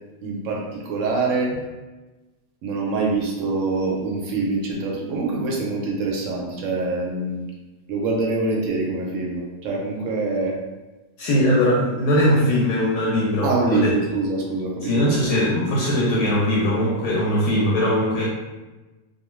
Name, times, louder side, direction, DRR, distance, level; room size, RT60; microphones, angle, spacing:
voice 1, 0.2-1.5 2.6-7.4 7.9-10.6 13.4-15.2, right 3 dB, 70° right, -1 dB, 0.9 m, -25 dB
voice 2, 11.2-13.9 14.8-18.3, equal, 85° left, -4 dB, 1.1 m, -20 dB
2.4 x 2.3 x 3.0 m, 1.1 s
omnidirectional pair, 1.5 m